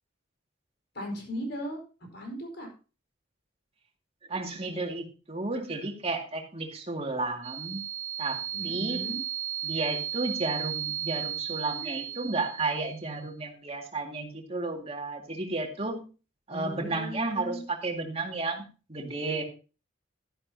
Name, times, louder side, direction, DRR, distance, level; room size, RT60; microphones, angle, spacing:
voice 1, 0.9-1.8 2.1-2.7 8.5-9.2 16.5-17.6, equal, 60° left, 2 dB, 4.9 m, -37 dB
voice 2, 4.3-7.8 8.2-8.4 8.6-9.0 9.6-16.0 16.5-19.4, right 3 dB, 30° right, 2 dB, 2.2 m, -32 dB
Microphone feedback dry, 7.4-13.1, right 11 dB, 80° right, 1.6 m, -35 dB
12.5 x 11.0 x 2.8 m, 0.35 s
head